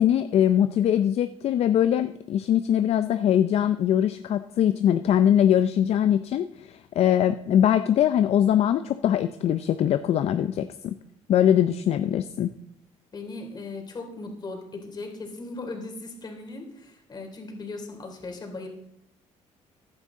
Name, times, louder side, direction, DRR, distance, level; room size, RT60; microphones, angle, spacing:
voice 1, 0.0-10.9 11.3-12.5, left 10 dB, 60° left, 10 dB, 0.5 m, -22 dB
voice 2, 13.1-18.7, left 3 dB, 35° left, 2 dB, 3.1 m, -38 dB
15.5 x 10.5 x 3.7 m, 0.78 s
cardioid pair, 110°, 12 cm